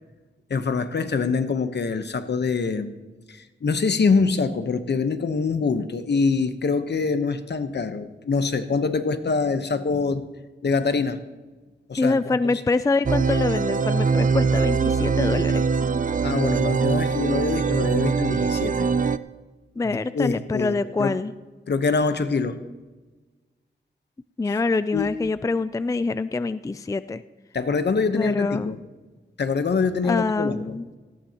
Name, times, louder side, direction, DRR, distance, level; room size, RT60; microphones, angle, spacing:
voice 1, 0.5-3.0 3.3-10.3 10.6-11.2 11.9-12.6 16.2-18.9 19.8-21.2 21.7-22.6 24.5-24.6 24.9-25.1 27.5-28.8 29.4-30.8, left 4 dB, 65° left, 10 dB, 1.0 m, -25 dB
voice 2, 12.0-15.6 19.8-21.3 24.4-27.2 28.1-28.7 30.0-30.9, left 3 dB, 15° left, 14 dB, 0.4 m, -25 dB
sound 1, 13.0-19.2, right 5 dB, 45° right, 0.5 m, -22 dB
18.0 x 15.5 x 2.9 m, 1.3 s
wide cardioid pair, 80°, 19 cm